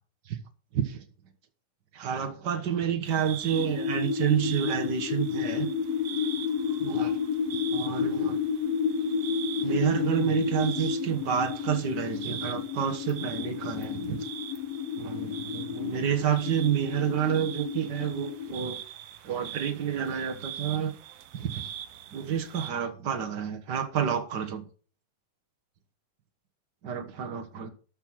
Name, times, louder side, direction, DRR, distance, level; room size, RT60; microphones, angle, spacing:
voice 1, 0.7-1.0 1.9-5.7 6.8-7.2 7.7-8.4 9.6-14.3 15.0-18.8 19.2-21.0 21.3-21.7 22.1-24.6 26.8-27.7, right 8 dB, 50° right, 1.4 m, -29 dB
sound 1, 3.0-22.7, right 10 dB, 65° right, 1.8 m, -43 dB
sound 2, 3.5-18.5, left 6 dB, 75° left, 1.6 m, -31 dB
12.5 x 5.5 x 6.1 m
omnidirectional pair, 3.4 m